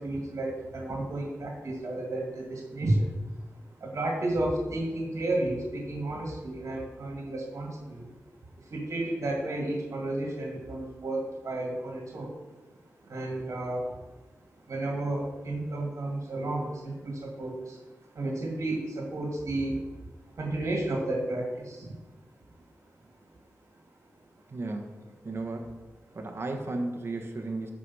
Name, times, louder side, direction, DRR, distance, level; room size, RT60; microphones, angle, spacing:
voice 1, 0.0-3.2 3.4-3.5 3.8-8.1 8.6-12.7 13.0-14.2 14.5-19.9 20.3-22.0 23.0-23.2 26.1-26.2, right 1 dB, 70° right, 0 dB, 2.0 m, -32 dB
voice 2, 24.5-24.9 25.2-25.7 26.1-27.7, right 2 dB, 50° right, 2 dB, 1.3 m, -34 dB
12.5 x 5.0 x 5.6 m, 1.2 s
wide cardioid pair, 120°, 5 cm